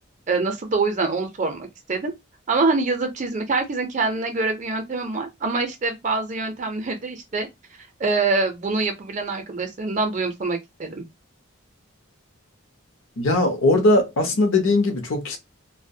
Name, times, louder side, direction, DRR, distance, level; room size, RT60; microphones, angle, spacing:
voice 1, 0.3-2.1 2.5-7.5 8.0-11.0, right 3 dB, 35° right, 0.5 m, -25 dB
voice 2, 13.2-15.4, left 2 dB, 75° left, 0.6 m, -19 dB
2.3 x 2.1 x 2.6 m
head